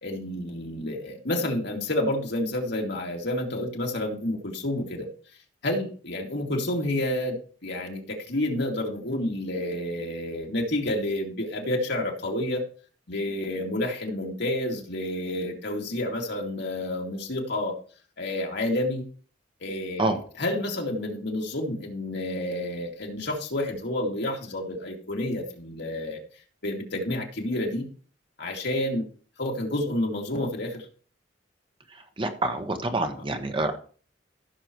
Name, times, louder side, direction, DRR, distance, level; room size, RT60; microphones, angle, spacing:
voice 1, 0.0-5.1 5.6-12.6 13.1-17.8 18.2-19.0 19.6-26.2 26.6-27.8 28.4-29.1 29.4-30.9, left 1 dB, 65° left, 0 dB, 2.3 m, -29 dB
voice 2, 32.2-33.8, right 2 dB, 30° right, 6 dB, 1.1 m, -27 dB
15.5 x 6.6 x 3.1 m, 0.42 s
head